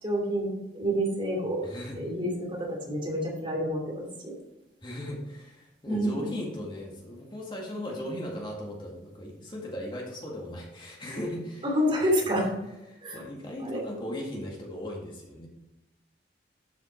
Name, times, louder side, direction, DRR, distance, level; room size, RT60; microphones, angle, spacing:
voice 1, 0.0-1.7 1.9-4.3 5.9-6.1 11.6-12.5 13.0-13.2 13.6-13.8, equal, 30° right, -1 dB, 2.9 m, -28 dB
voice 2, 1.6-2.0 4.8-11.7 12.3-12.4 12.9-15.5, left 1 dB, 25° left, -2 dB, 2.0 m, -37 dB
12.0 x 5.8 x 4.4 m, 0.95 s
head